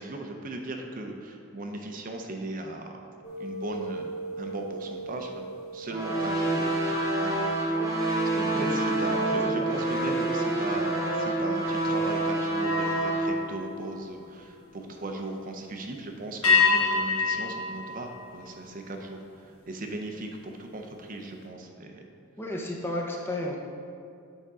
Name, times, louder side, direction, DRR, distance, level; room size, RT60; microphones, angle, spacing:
voice 1, 0.0-3.1 3.4-7.9 8.3-22.0, right 2 dB, 40° right, 3 dB, 0.6 m, -38 dB
sound 1, 3.2-8.8 9.3-9.6 12.5-14.7 16.4-19.0, left 4 dB, 80° left, 1.1 m, -30 dB
sound 2, 5.9-13.3, right 2 dB, 15° right, 0.9 m, -27 dB
voice 2, 22.4-23.5, left 1 dB, 10° left, -1 dB, 0.7 m, -32 dB
8.1 x 5.1 x 3.7 m, 2.4 s
head